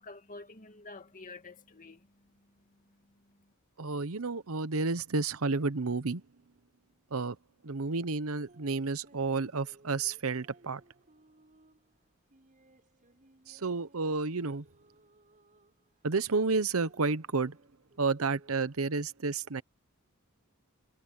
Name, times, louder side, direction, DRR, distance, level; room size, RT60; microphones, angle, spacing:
voice 1, 0.0-3.5, left 3 dB, 40° left, 2.2 m, -50 dB
voice 2, 3.8-6.2 7.1-7.4 7.6-10.8 13.5-14.6 16.0-17.6 18.0-19.6, right 4 dB, 70° right, 0.9 m, -31 dB
sound 1, 8.3-18.6, right 2 dB, 40° right, 7.2 m, -63 dB
head